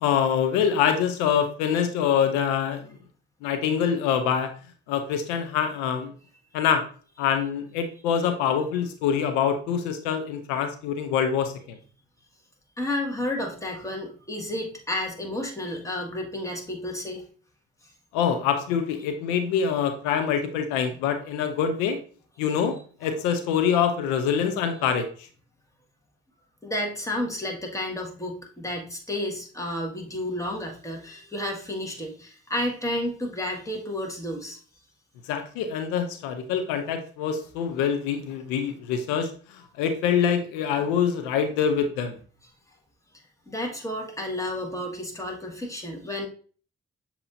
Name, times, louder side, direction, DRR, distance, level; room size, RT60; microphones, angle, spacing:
voice 1, 0.0-3.0 3.4-4.5 4.9-6.1 6.5-6.9 7.2-11.8 18.1-22.0 22.4-25.1 35.3-42.1, left 7 dB, 90° left, 8 dB, 0.5 m, -25 dB
voice 2, 12.8-17.2 26.6-34.6 43.5-46.3, left 1 dB, 10° left, 0 dB, 1.6 m, -31 dB
6.8 x 2.8 x 2.5 m, 0.41 s
hypercardioid pair, 50°, 29 cm